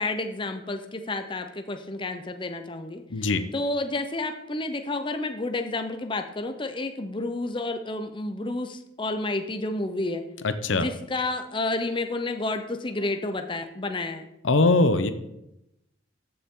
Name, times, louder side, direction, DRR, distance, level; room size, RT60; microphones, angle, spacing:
voice 1, 0.0-3.0 3.5-10.2 10.7-14.3, left 2 dB, 25° left, 7 dB, 0.7 m, -30 dB
voice 2, 3.1-3.4 10.4-10.9 14.4-15.1, left 3 dB, 90° left, 11 dB, 0.8 m, -21 dB
14.0 x 6.9 x 3.8 m, 0.87 s
head